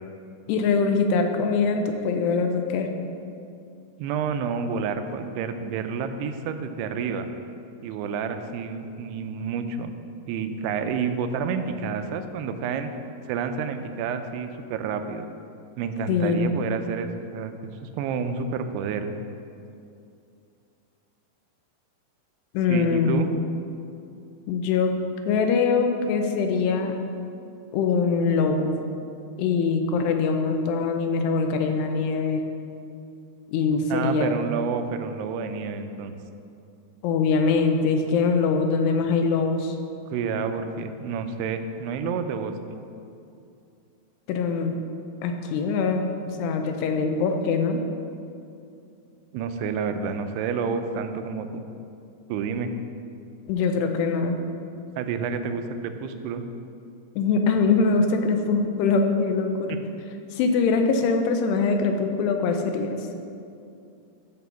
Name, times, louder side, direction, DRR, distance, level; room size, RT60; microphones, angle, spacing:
voice 1, 0.5-2.9 16.1-16.6 22.5-23.4 24.5-24.9 25.3-26.9 27.7-28.7 29.4-32.4 33.5-34.4 37.0-39.8 44.3-44.8 45.2-47.8 53.5-54.4 57.2-59.8 60.3-62.9, left 4 dB, 90° left, 5 dB, 2.7 m, -23 dB
voice 2, 4.0-7.3 7.8-9.9 10.3-12.9 13.3-15.3 15.8-17.5 17.8-19.2 22.7-23.3 33.9-36.1 40.1-42.5 49.3-51.6 52.3-52.7 55.0-56.4 59.7-59.8, right 6 dB, 85° right, 8 dB, 2.6 m, -29 dB
10.5 x 3.7 x 7.0 m, 2.5 s
omnidirectional pair, 4.8 m